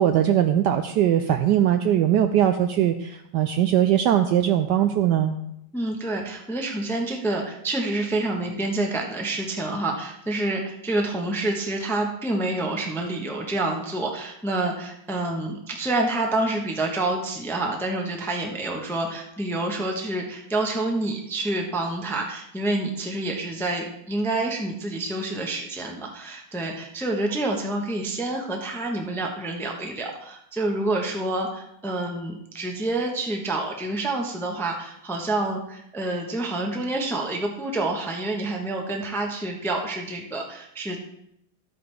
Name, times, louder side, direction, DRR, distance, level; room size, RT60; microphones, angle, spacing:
voice 1, 0.0-5.4, right 10 dB, 75° right, 7 dB, 1.0 m, -20 dB
voice 2, 5.7-41.0, right 2 dB, ahead, 1 dB, 0.6 m, -28 dB
12.5 x 8.7 x 3.4 m, 0.79 s
omnidirectional pair, 2.2 m